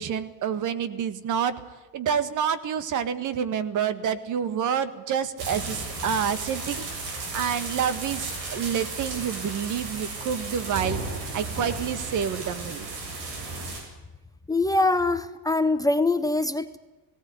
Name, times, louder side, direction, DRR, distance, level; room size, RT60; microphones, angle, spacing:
voice 1, 0.0-1.6 1.9-11.0 11.3-12.9, right 8 dB, 55° right, 14 dB, 1.7 m, -28 dB
sound 1, 5.4-13.8, right 3 dB, 85° right, 7.9 m, -34 dB
voice 2, 14.5-16.8, left 2 dB, 10° left, 10 dB, 0.8 m, -23 dB
18.5 x 18.0 x 9.6 m, 1.2 s
cardioid pair, 140°, 37 cm